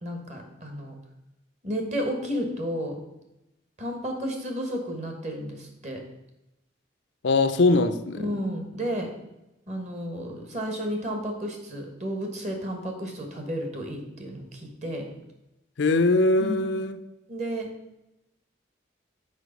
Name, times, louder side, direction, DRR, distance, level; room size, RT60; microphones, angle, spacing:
voice 1, 0.0-0.9 1.6-3.0 3.8-6.0 8.2-9.1 9.7-15.1 16.4-16.6 17.3-17.7, equal, 35° right, 1.3 m, -32 dB
voice 2, 7.2-8.2 15.8-17.0, left 2 dB, 75° left, 0.5 m, -21 dB
6.5 x 5.2 x 5.2 m
head